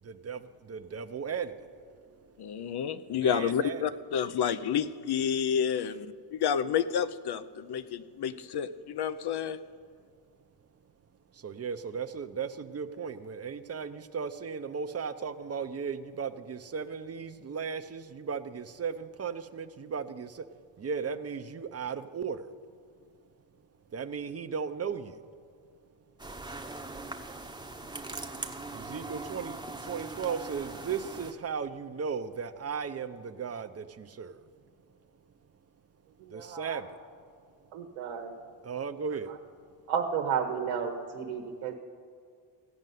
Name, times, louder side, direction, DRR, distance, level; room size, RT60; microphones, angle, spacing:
voice 1, 0.0-2.4 3.2-3.8 11.3-20.5 20.8-22.5 23.9-25.2 28.7-34.4 36.3-37.0 38.6-39.3, right 6 dB, 30° right, 10 dB, 0.8 m, -36 dB
voice 2, 2.4-6.1 6.3-9.6, left 8 dB, 50° left, 14 dB, 0.8 m, -30 dB
sound 1, 26.2-31.3, right 2 dB, 10° right, 1.0 m, -41 dB
voice 3, 36.2-36.8 37.7-38.4 39.9-41.8, right 7 dB, 90° right, 3 dB, 1.2 m, -32 dB
15.5 x 5.4 x 9.3 m, 2.1 s
cardioid pair, 80°, 50 cm